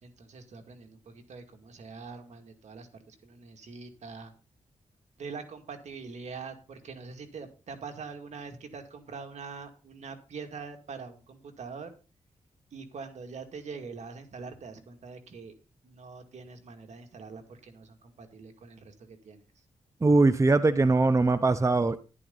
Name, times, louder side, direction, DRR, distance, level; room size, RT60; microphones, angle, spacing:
voice 1, 0.0-4.3 5.2-11.9 12.7-15.5 15.8-19.6, right 5 dB, 70° right, 6 dB, 2.3 m, -44 dB
voice 2, 20.0-22.0, right 3 dB, 25° right, 13 dB, 0.8 m, -21 dB
11.5 x 11.0 x 4.0 m, 0.33 s
cardioid pair, 75°, 12 cm